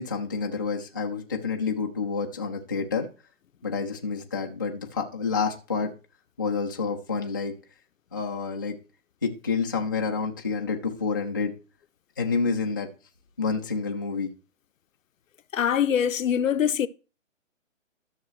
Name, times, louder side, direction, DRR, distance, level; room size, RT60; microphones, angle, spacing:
voice 1, 0.0-3.1 3.6-5.9 6.4-7.5 8.1-8.8 9.2-11.5 12.2-12.9 13.4-14.3, left 5 dB, 15° left, 0.4 m, -28 dB
voice 2, 15.5-16.9, left 9 dB, 75° left, 0.7 m, -23 dB
13.0 x 6.6 x 3.1 m
hypercardioid pair, 150°, 40 cm